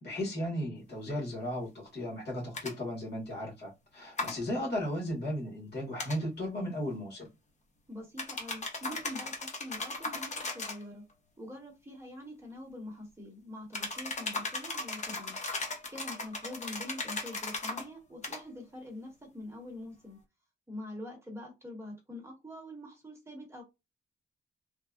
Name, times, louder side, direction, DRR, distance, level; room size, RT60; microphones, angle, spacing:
voice 1, 0.0-7.3, left 1 dB, 55° left, 1.6 m, -35 dB
sound 1, 2.5-2.7 4.2-4.4 6.0-6.2 8.2-10.8 13.7-17.9 18.2-18.4, left 3 dB, 35° left, 0.8 m, -37 dB
voice 2, 7.9-11.0 11.4-15.4 15.9-20.2 20.7-23.6, left 1 dB, 15° right, 1.1 m, -45 dB
3.3 x 2.2 x 2.4 m
wide cardioid pair, 150°, 20 cm